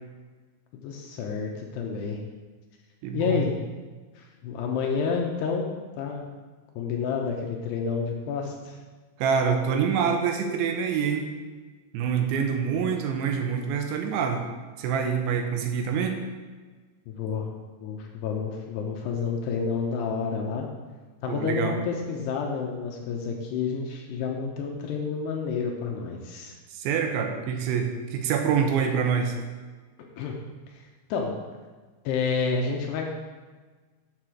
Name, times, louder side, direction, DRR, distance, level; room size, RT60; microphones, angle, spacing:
voice 1, 0.7-2.2 3.1-3.5 4.2-6.3 6.8-8.8 17.1-17.5 17.8-20.7 21.2-26.6 30.2-30.4 30.7-30.8 31.1-31.3 32.0-33.1, left 5 dB, 80° left, 1 dB, 2.7 m, -29 dB
voice 2, 3.0-3.4 9.2-11.3 11.9-14.4 14.8-16.2 21.3-21.8 26.7-29.4, right 7 dB, 80° right, 4 dB, 3.2 m, -26 dB
7.6 x 6.7 x 5.9 m, 1.4 s
omnidirectional pair, 5.3 m